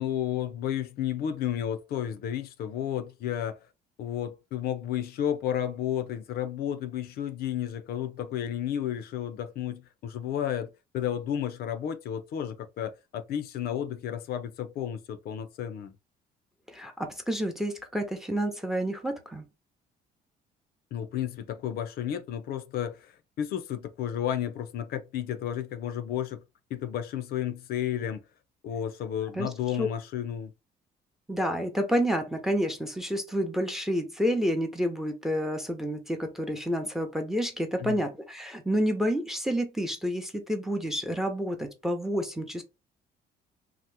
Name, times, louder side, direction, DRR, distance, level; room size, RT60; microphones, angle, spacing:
voice 1, 0.0-3.6 4.0-15.9 20.9-26.4 26.7-28.2 28.6-30.5 37.8-38.0, left 10 dB, 65° left, 0.5 m, -32 dB
voice 2, 16.7-19.5 29.4-29.5 29.8-29.9 31.3-42.6, equal, ahead, 0.6 m, -29 dB
2.9 x 2.0 x 3.3 m
cardioid pair, 110°, 17 cm